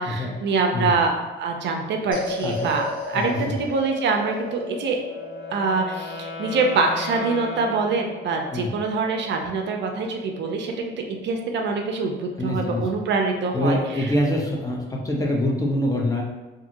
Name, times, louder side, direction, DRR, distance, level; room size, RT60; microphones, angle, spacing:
voice 1, 0.0-5.0 5.5-14.1, right 4 dB, 65° right, 3 dB, 0.4 m, -25 dB
sound 1, 2.1-12.5, left 3 dB, 45° left, 1.4 m, -36 dB
voice 2, 2.4-2.8 3.1-3.5 8.5-8.7 12.4-12.8 13.5-16.2, left 1 dB, 15° left, -2 dB, 0.6 m, -25 dB
Wind instrument woodwind instrument, 5.0-8.6, left 4 dB, 75° left, 0.7 m, -37 dB
2.7 x 2.6 x 2.5 m, 1.1 s
cardioid pair, 90°, 20 cm